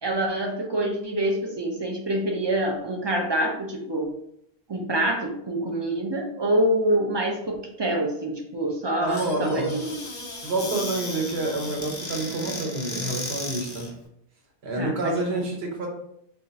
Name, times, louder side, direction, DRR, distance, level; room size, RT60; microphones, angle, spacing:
voice 1, 0.0-4.1 4.7-10.0 14.8-15.4, right 1 dB, 45° right, 1 dB, 0.3 m, -26 dB
voice 2, 9.0-9.7 10.4-13.9 14.6-15.9, right 2 dB, 85° right, 1 dB, 1.1 m, -28 dB
Squeak / Cupboard open or close, 9.1-13.9, left 2 dB, 35° left, 0.4 m, -35 dB
2.4 x 2.3 x 3.9 m, 0.74 s
omnidirectional pair, 1.1 m